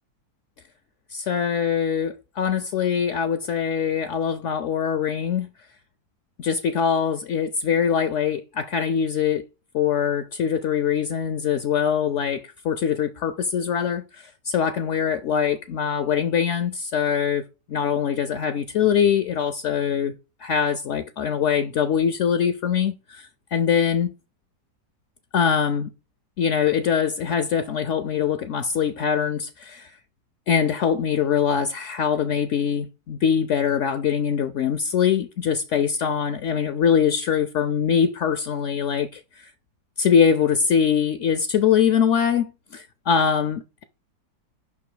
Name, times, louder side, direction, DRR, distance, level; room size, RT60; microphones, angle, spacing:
voice 1, 1.1-5.5 6.4-9.4 9.7-20.1 20.4-24.1 25.3-25.9 26.4-29.9 30.5-39.5 40.0-43.8, left 7 dB, 70° left, 0.7 m, -23 dB
6.9 x 5.5 x 4.9 m
omnidirectional pair, 1.8 m